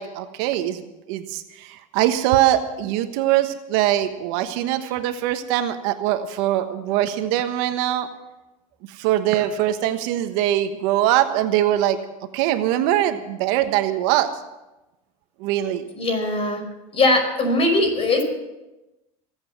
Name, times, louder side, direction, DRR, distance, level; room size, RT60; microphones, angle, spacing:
voice 1, 0.0-8.1 9.0-12.0 12.3-14.3 15.4-15.8, right 13 dB, 70° right, 9 dB, 1.3 m, -22 dB
voice 2, 16.0-16.6 16.9-18.2, left 2 dB, 35° left, 4 dB, 5.4 m, -20 dB
25.5 x 8.8 x 6.1 m, 1.0 s
supercardioid pair, 105°, 17 cm